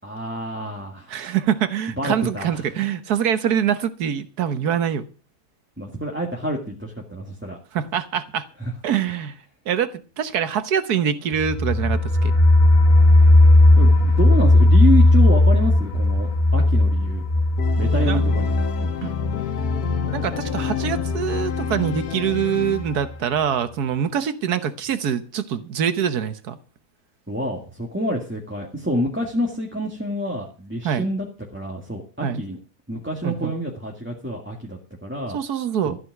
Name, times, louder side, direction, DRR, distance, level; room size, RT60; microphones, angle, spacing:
voice 1, 0.0-1.1 1.9-2.6 5.8-7.6 8.6-8.7 13.8-17.2 17.8-18.9 27.3-31.3 31.5-32.6 32.9-35.4 35.9-36.0, equal, 5° right, -1 dB, 2.0 m, -27 dB
voice 2, 1.1-5.1 7.7-8.5 8.8-9.3 9.7-12.3 18.1-18.2 19.0-19.1 20.1-26.6 30.8-31.0 32.2-32.4 33.2-33.5 35.3-36.0, right 8 dB, 90° right, 11 dB, 1.6 m, -24 dB
sound 1, 11.3-22.0 22.3-22.4 22.8-22.9, left 1 dB, 40° left, 2.6 m, -17 dB
Organ, 17.6-23.3, left 10 dB, 80° left, 1.5 m, -30 dB
14.5 x 5.7 x 9.3 m, 0.37 s
omnidirectional pair, 1.6 m